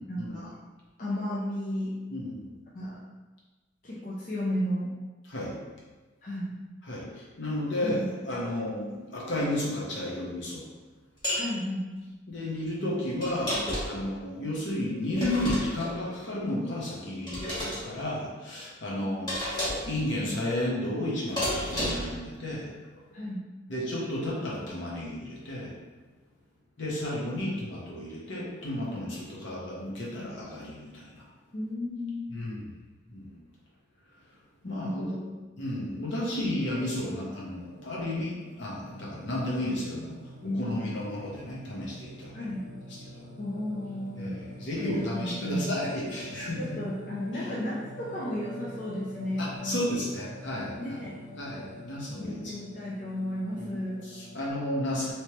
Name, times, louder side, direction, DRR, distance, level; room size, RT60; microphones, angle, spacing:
voice 1, 0.1-0.5 1.0-1.9 2.7-3.0 3.8-4.9 6.2-6.5 7.8-8.1 11.3-11.9 19.0-19.3 23.1-23.5 27.3-27.5 29.3-29.4 31.5-32.6 34.6-35.4 40.4-41.1 42.3-42.7 43.4-44.4 44.7-45.8 46.6-50.0 50.7-51.2 52.1-54.0, left 1 dB, 40° left, -7 dB, 0.5 m, -33 dB
voice 2, 2.1-2.4 5.3-5.5 6.9-10.6 12.3-22.7 23.7-25.7 26.8-31.2 32.3-32.6 33.1-33.3 34.6-35.0 35.6-40.2 40.6-42.5 44.2-46.8 49.4-51.0 51.4-52.5 53.6-53.7 54.1-55.1, left 1 dB, 70° left, -5 dB, 1.0 m, -33 dB
sound 1, 11.2-11.5 13.2-14.0 15.2-15.9 17.3-17.8 19.3-19.9 21.4-22.2, left 1 dB, 20° left, 1.3 m, -31 dB
Singing, 37.5-54.5, equal, 40° right, 0.4 m, -46 dB
3.1 x 3.1 x 2.9 m, 1.3 s
head